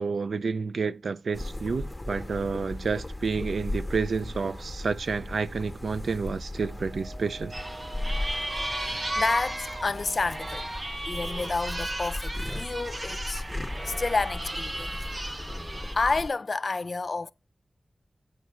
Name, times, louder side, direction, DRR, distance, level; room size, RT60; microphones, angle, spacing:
voice 1, 0.0-7.5, right 4 dB, 85° right, 0.3 m, -30 dB
sound 1, 1.3-16.3, left 1 dB, 15° left, 0.8 m, -37 dB
Brass instrument, 6.6-10.8, right 2 dB, 60° right, 1.5 m, -46 dB
sound 2, 7.5-16.0, right 1 dB, 35° right, 0.7 m, -35 dB
voice 2, 8.3-10.7 11.1-15.1 15.9-17.3, left 3 dB, 55° left, 0.3 m, -30 dB
8.4 x 4.2 x 5.9 m
wide cardioid pair, 70°, 0 cm